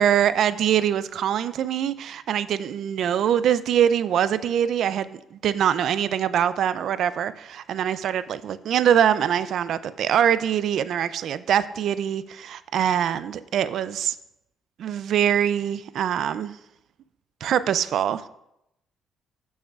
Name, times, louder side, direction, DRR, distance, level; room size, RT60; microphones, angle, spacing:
voice 1, 0.0-14.2 14.8-16.6 17.4-18.3, right 9 dB, 70° right, 0.4 m, -23 dB
13.5 x 6.3 x 2.4 m
cardioid pair, 90°, 0 cm